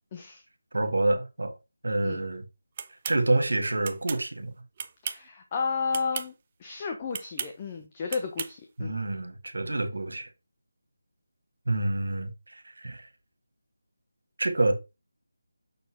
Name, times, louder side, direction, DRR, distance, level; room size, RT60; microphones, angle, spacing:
voice 1, 0.1-0.4 2.0-2.2 5.0-6.3 6.6-9.0, left 5 dB, 25° left, 0.9 m, -32 dB
voice 2, 0.7-1.5 1.8-2.5 3.1-4.5 8.8-10.3 11.7-13.1 14.4-14.8, right 2 dB, 80° right, 1.6 m, -27 dB
sound 1, 2.8-3.2 3.8-4.2 4.8-5.3 5.9-6.3 7.1-7.5 8.1-8.5, right 7 dB, 30° right, 0.6 m, -35 dB
6.9 x 4.3 x 4.4 m
figure-of-eight pair, 165°, 0 cm